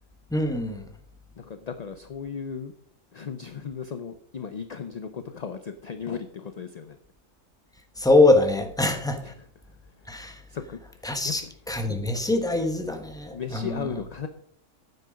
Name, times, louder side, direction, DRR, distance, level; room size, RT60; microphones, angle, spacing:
voice 1, 0.3-0.9 8.0-9.3 10.1-10.4 11.0-13.9, left 2 dB, 5° left, 5 dB, 1.0 m, -23 dB
voice 2, 1.4-2.7 3.1-7.0 9.2-9.3 9.7-10.1 10.5-11.5 12.5-12.6 13.3-14.3, left 6 dB, 50° left, 9 dB, 0.5 m, -36 dB
9.3 x 7.9 x 5.1 m, 0.63 s
omnidirectional pair, 1.4 m